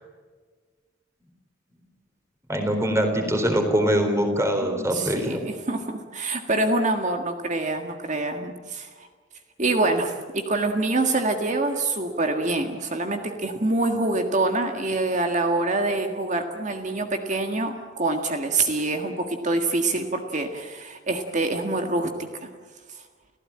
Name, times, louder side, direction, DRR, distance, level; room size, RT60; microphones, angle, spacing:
voice 1, 2.5-5.4, equal, 15° right, 5 dB, 4.0 m, -23 dB
voice 2, 4.6-9.1 9.6-22.1 22.4-22.5 22.9-23.0, right 2 dB, 35° right, 5 dB, 1.7 m, -25 dB
29.5 x 15.5 x 8.8 m, 1.5 s
head